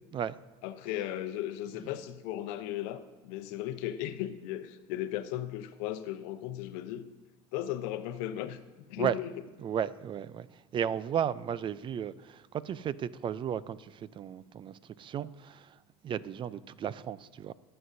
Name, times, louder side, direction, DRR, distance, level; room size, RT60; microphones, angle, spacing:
voice 1, 0.6-7.1 7.5-8.6 8.9-9.3, left 12 dB, 70° left, 0.8 m, -36 dB
voice 2, 9.6-17.5, right 9 dB, 35° right, 0.4 m, -34 dB
21.5 x 7.8 x 2.7 m
supercardioid pair, 95°, 15 cm